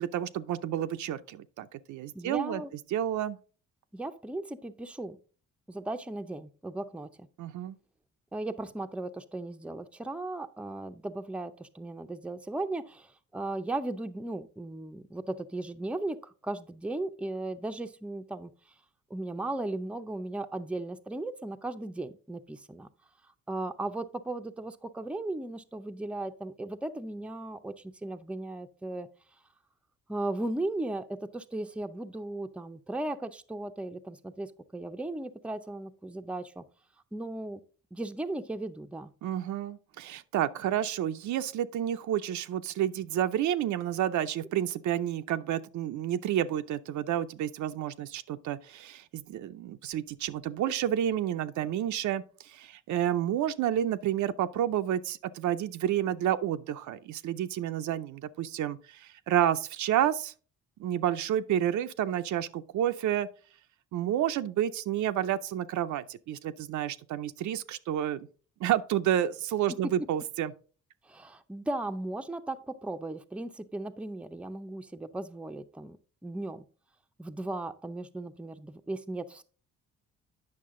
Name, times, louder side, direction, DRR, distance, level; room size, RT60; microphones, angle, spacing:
voice 1, 0.0-2.6 2.9-3.4 7.4-7.8 39.2-60.3 60.8-63.3 63.9-68.3 68.6-70.5, right 11 dB, 70° right, 0.6 m, -30 dB
voice 2, 2.1-2.7 3.9-5.2 5.7-7.3 8.3-18.5 19.1-22.9 23.5-29.1 30.1-36.6 37.1-37.6 37.9-39.1 69.7-70.1 71.0-76.0 76.2-76.6 77.2-79.4, right 2 dB, 5° right, 0.5 m, -36 dB
8.7 x 5.9 x 3.7 m
cardioid pair, 90°, 30 cm